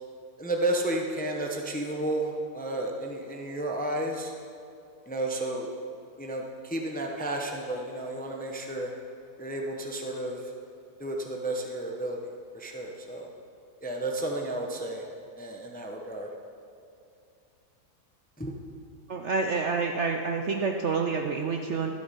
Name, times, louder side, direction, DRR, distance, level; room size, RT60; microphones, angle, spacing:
voice 1, 0.4-4.3 5.1-5.7 6.2-8.9 9.4-10.5 11.0-13.3 13.8-15.0 15.4-16.3 18.4-18.6, right 1 dB, 10° left, 1 dB, 0.5 m, -32 dB
voice 2, 19.1-21.9, right 4 dB, 60° right, 3 dB, 0.7 m, -28 dB
12.5 x 8.4 x 5.6 m, 2.5 s
omnidirectional pair, 1.7 m